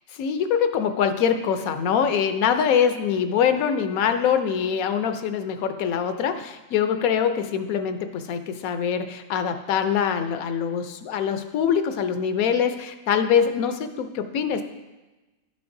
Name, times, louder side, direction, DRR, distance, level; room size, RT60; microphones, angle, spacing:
voice 1, 0.1-14.6, left 7 dB, 85° left, 8 dB, 1.1 m, -24 dB
11.5 x 6.8 x 2.6 m, 1.1 s
omnidirectional pair, 1.4 m